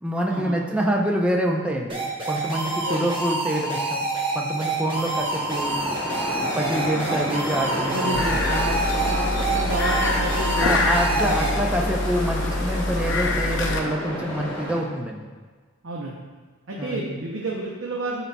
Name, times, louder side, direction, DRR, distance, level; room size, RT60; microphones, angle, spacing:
voice 1, 0.0-4.1 4.3-5.8 6.4-8.5 10.6-15.3 16.8-17.0, right 1 dB, 5° right, -1 dB, 0.5 m, -26 dB
sound 1, 1.9-11.5, right 2 dB, 25° right, 1.0 m, -27 dB
Waves surf, 5.0-14.8, equal, 10° left, 1.6 m, -31 dB
voice 2, 7.9-11.7 15.8-16.2 16.7-18.2, right 1 dB, 60° right, -3 dB, 0.7 m, -30 dB
sound 2, 8.1-13.8, left 2 dB, 55° left, 0.7 m, -25 dB
11.0 x 4.1 x 2.3 m, 1.4 s
head